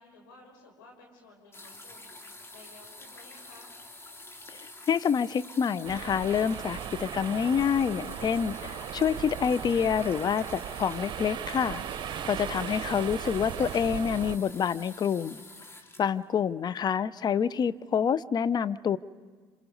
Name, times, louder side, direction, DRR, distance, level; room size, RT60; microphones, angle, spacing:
voice 1, 0.0-3.7, left 3 dB, 80° left, 1 dB, 5.6 m, -55 dB
sound 1, 1.5-16.9 17.8-17.9, left 2 dB, 25° left, 2.8 m, -47 dB
voice 2, 4.5-11.8 12.2-15.4 16.0-19.0, left 7 dB, 40° left, 16 dB, 0.7 m, -27 dB
sound 2, 5.8-14.4, right 10 dB, 50° right, 0.9 m, -37 dB
27.0 x 27.0 x 5.4 m, 1.5 s
hypercardioid pair, 65°, 11 cm